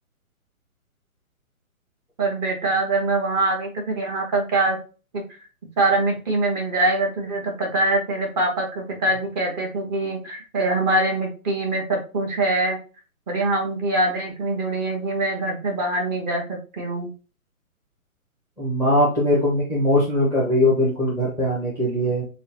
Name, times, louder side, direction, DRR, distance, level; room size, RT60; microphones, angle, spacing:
voice 1, 2.2-4.8 5.8-12.8 13.3-17.1, right 2 dB, 30° right, 0 dB, 1.5 m, -23 dB
voice 2, 18.6-22.2, left 1 dB, 5° right, -6 dB, 0.8 m, -20 dB
6.6 x 2.4 x 2.8 m, 0.34 s
hypercardioid pair, 150°, 43 cm